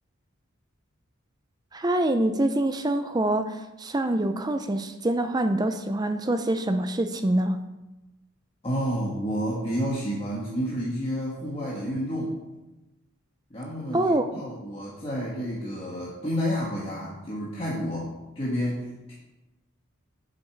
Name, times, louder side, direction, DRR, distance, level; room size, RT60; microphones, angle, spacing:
voice 1, 1.7-7.6 13.9-14.3, right 1 dB, 20° right, 9 dB, 0.4 m, -25 dB
voice 2, 8.6-12.4 13.5-19.1, equal, 25° left, -6 dB, 1.4 m, -30 dB
8.2 x 7.4 x 4.6 m, 1.0 s
head